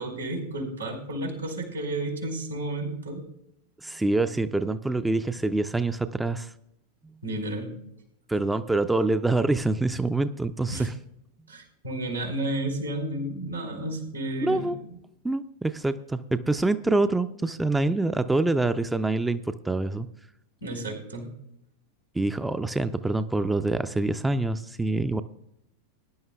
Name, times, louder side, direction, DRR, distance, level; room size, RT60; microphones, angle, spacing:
voice 1, 0.0-3.2 7.2-7.7 10.7-10.9 11.5-15.0 20.6-21.3, right 1 dB, 85° right, -1 dB, 3.9 m, -32 dB
voice 2, 3.8-6.5 8.3-10.9 14.4-14.8 15.2-20.1 22.2-25.2, right 2 dB, 5° right, 11 dB, 0.4 m, -26 dB
20.5 x 11.0 x 2.3 m, 0.78 s
figure-of-eight pair, 90°, 0 cm